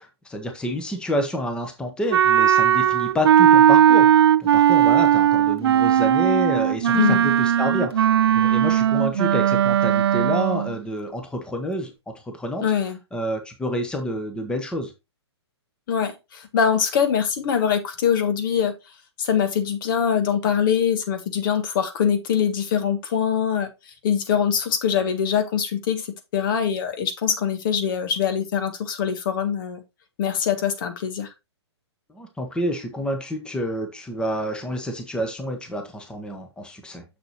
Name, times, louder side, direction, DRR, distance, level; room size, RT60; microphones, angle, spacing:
voice 1, 0.0-12.6 13.1-14.9 32.1-37.0, equal, 5° left, 1.2 m, -29 dB
Wind instrument woodwind instrument, 2.1-10.7, right 10 dB, 65° right, 0.4 m, -17 dB
voice 2, 6.9-7.2 12.6-13.0 15.9-18.7 19.2-23.7 24.0-29.8 30.2-31.3, left 7 dB, 50° left, 1.4 m, -23 dB
6.7 x 6.5 x 3.1 m
figure-of-eight pair, 120°, 14 cm